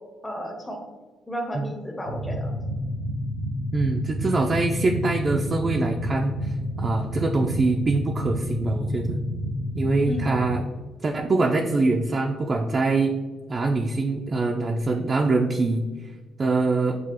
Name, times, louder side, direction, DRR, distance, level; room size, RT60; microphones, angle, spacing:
voice 1, 0.2-0.8 1.3-2.5 10.0-10.3, equal, 10° left, 0 dB, 0.7 m, -32 dB
sound 1, 2.0-10.6, equal, 80° left, 0.9 m, -29 dB
voice 2, 3.7-9.2 9.7-10.6 11.0-13.1 13.5-15.9 16.4-17.0, right 3 dB, 35° right, 2 dB, 0.4 m, -24 dB
6.0 x 2.4 x 2.9 m, 1.3 s
cardioid pair, 90°, 0 cm